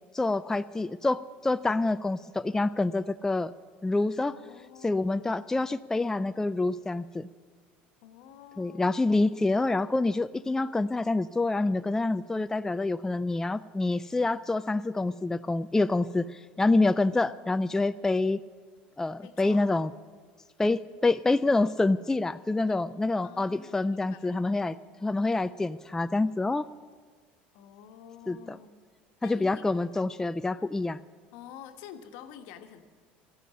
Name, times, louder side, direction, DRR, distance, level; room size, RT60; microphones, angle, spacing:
voice 1, 0.1-3.5 3.8-4.4 4.8-7.3 8.6-18.4 19.0-19.9 20.6-26.7 28.3-28.6 29.2-31.0, left 2 dB, 10° left, 12 dB, 0.4 m, -27 dB
voice 2, 4.3-5.7 8.0-9.0 19.2-19.7 22.7-22.8 23.2-24.4 27.5-28.8 29.2-29.6 31.3-32.9, left 9 dB, 70° left, 7 dB, 1.3 m, -49 dB
14.0 x 9.1 x 9.8 m, 1.5 s
hypercardioid pair, 85°, 5 cm